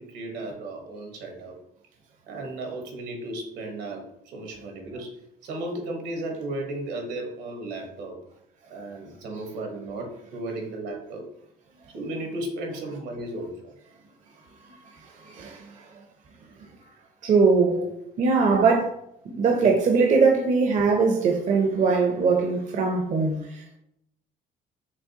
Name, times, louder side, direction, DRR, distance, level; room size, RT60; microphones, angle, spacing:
voice 1, 0.0-1.6 2.3-5.1 5.4-8.2 8.7-11.2 11.9-13.5 17.7-17.9 18.5-18.8, right 2 dB, 80° right, 1.2 m, -34 dB
voice 2, 15.2-15.7 17.2-17.8 18.2-18.9 19.4-23.8, right 4 dB, 45° right, 0.6 m, -21 dB
5.9 x 2.1 x 2.8 m
cardioid pair, 110°, 17 cm